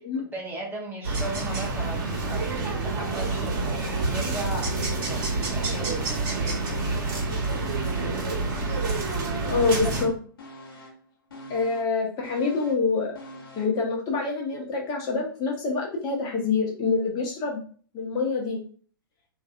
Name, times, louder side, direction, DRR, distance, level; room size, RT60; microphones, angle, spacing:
voice 1, 0.2-3.7 4.1-6.1, right 1 dB, 15° right, -3 dB, 0.9 m, -37 dB
sound 1, 1.0-10.1, right 3 dB, 50° right, 1.3 m, -28 dB
sound 2, 6.7-7.3 7.6-9.2 9.5-13.8 14.2-14.3, equal, 75° left, 0.9 m, -45 dB
voice 2, 9.4-10.1 11.5-13.1 13.6-17.6 17.9-18.6, left 4 dB, 35° left, -1 dB, 0.8 m, -26 dB
2.6 x 2.3 x 2.5 m, 0.43 s
hypercardioid pair, 110°, 12 cm